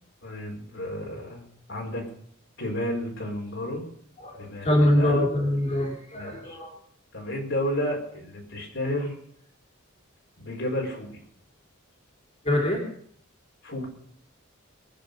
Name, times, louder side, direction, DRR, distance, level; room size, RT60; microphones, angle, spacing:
voice 1, 0.2-2.1 2.6-3.8 4.3-5.2 6.1-6.6 7.1-9.1 10.4-11.2 13.6-13.9, left 1 dB, 60° left, 0 dB, 4.5 m, -32 dB
voice 2, 4.6-6.7 12.4-12.8, left 1 dB, 35° left, -1 dB, 3.8 m, -23 dB
22.0 x 9.5 x 5.3 m, 0.65 s
head